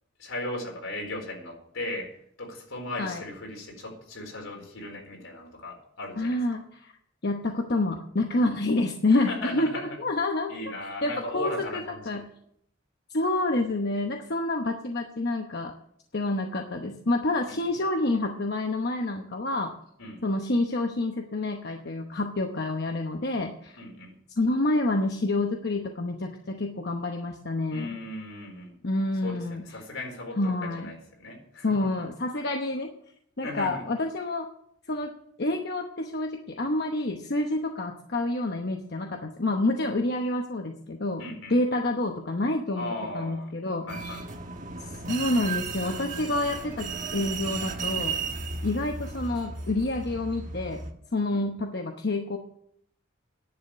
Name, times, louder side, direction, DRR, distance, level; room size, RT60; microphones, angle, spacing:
voice 1, 0.2-2.1 2.4-6.4 9.1-9.9 10.5-12.2 17.4-17.5 20.0-20.2 23.8-24.2 27.7-28.7 29.2-31.7 33.4-33.8 41.2-41.6 42.7-43.5 43.9-44.2 51.3-51.4, left 1 dB, 80° left, 1 dB, 4.3 m, -37 dB
voice 2, 6.1-6.9 7.2-9.7 10.0-10.5 11.0-12.2 13.1-15.7 16.1-19.7 20.2-23.8 24.4-27.9 28.8-29.6 30.4-30.9 31.6-32.9 33.4-34.5 34.9-35.1 35.4-41.2 41.5-44.2 45.1-48.2 48.6-50.8 51.1-52.4, left 2 dB, 55° left, 3 dB, 0.9 m, -28 dB
sound 1, 43.9-50.9, right 4 dB, 40° right, 1.3 m, -34 dB
10.5 x 7.2 x 8.9 m, 0.70 s
head